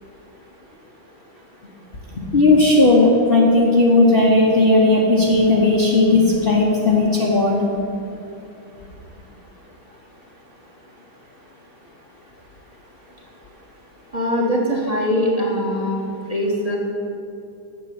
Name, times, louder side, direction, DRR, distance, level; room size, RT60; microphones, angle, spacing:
voice 1, 2.1-7.6, left 2 dB, 35° left, -4 dB, 1.0 m, -15 dB
voice 2, 14.1-16.0 16.3-16.8, equal, 20° right, -2 dB, 1.4 m, -21 dB
9.0 x 6.8 x 8.5 m, 2.7 s
omnidirectional pair, 2.1 m